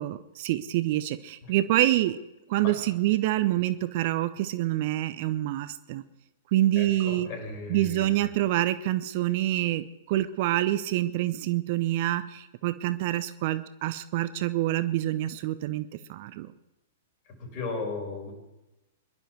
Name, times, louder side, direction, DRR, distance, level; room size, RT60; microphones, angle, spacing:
voice 1, 0.0-2.2 2.5-6.0 6.5-7.3 7.7-16.5, right 15 dB, 45° right, 14 dB, 0.6 m, -26 dB
voice 2, 6.8-8.3 17.3-18.3, left 4 dB, 35° left, 2 dB, 5.2 m, -36 dB
22.5 x 11.5 x 4.6 m, 0.98 s
figure-of-eight pair, 105°, 0 cm